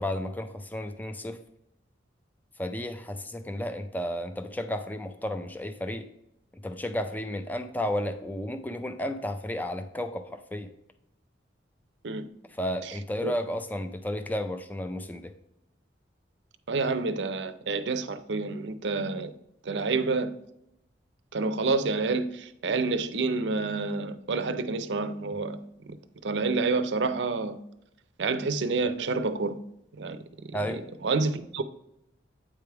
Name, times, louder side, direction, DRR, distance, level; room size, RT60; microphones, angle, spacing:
voice 1, 0.0-1.4 2.6-6.1 6.6-10.7 12.5-15.3 30.5-30.8, left 1 dB, 10° left, 0.4 m, -33 dB
voice 2, 16.7-19.3 19.6-20.3 21.3-25.6 26.2-27.6 28.2-29.6 30.0-30.2 30.7-31.6, right 3 dB, 70° right, 0.5 m, -28 dB
8.5 x 3.4 x 4.6 m
head